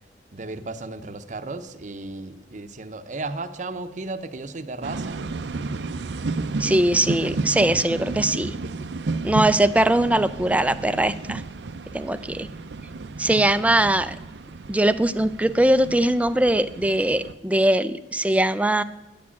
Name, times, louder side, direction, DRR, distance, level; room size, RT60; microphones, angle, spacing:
voice 1, 0.3-5.2, right 3 dB, 45° right, 8 dB, 0.8 m, -34 dB
sound 1, 4.8-17.3, right 3 dB, 80° right, 0.6 m, -32 dB
voice 2, 6.6-8.5 9.2-11.4 11.9-12.5 13.2-14.2 14.7-18.8, right 1 dB, 10° right, 13 dB, 0.4 m, -21 dB
10.5 x 8.6 x 8.5 m, 1.0 s
head